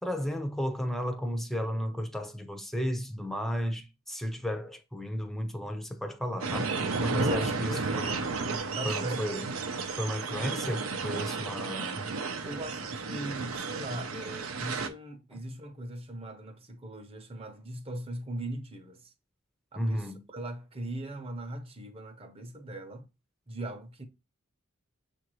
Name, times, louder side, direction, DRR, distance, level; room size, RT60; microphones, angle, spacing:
voice 1, 0.0-8.1 8.8-9.5 9.9-12.0 15.3-15.4 19.8-20.2, equal, ahead, 0.6 m, -34 dB
sound 1, 6.4-14.9, right 4 dB, 85° right, 0.7 m, -33 dB
voice 2, 7.1-8.0 8.7-9.2 11.4-11.9 12.4-19.1 19.7-23.0 23.5-24.0, right 1 dB, 30° right, 0.8 m, -38 dB
6.8 x 2.6 x 3.0 m
head